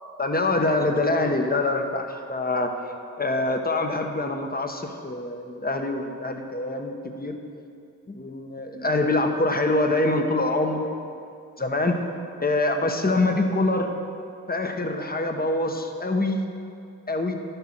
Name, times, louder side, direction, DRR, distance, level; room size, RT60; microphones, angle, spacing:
voice 1, 0.2-7.4 8.1-11.0 11.6-12.0 12.4-14.0 14.5-16.4 17.1-17.3, left 2 dB, 25° left, 4 dB, 1.2 m, -25 dB
11.5 x 6.8 x 6.1 m, 2.4 s
cardioid pair, 45°, 34 cm